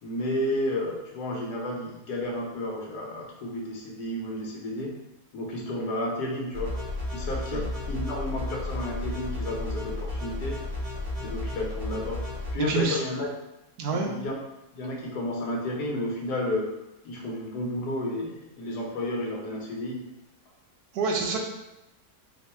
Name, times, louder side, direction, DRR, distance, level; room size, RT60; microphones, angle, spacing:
voice 1, 0.0-4.9 5.3-6.7 7.1-10.6 11.2-12.2 12.5-13.3 13.9-14.3 14.7-16.7 17.0-20.1, left 1 dB, 80° left, -1 dB, 1.3 m, -32 dB
sound 1, 6.5-12.5, left 2 dB, 40° right, 1.1 m, -33 dB
voice 2, 12.6-13.0 13.8-14.1 20.9-21.4, right 4 dB, 75° right, 1 dB, 1.1 m, -27 dB
3.7 x 2.6 x 4.2 m, 0.95 s
omnidirectional pair, 1.7 m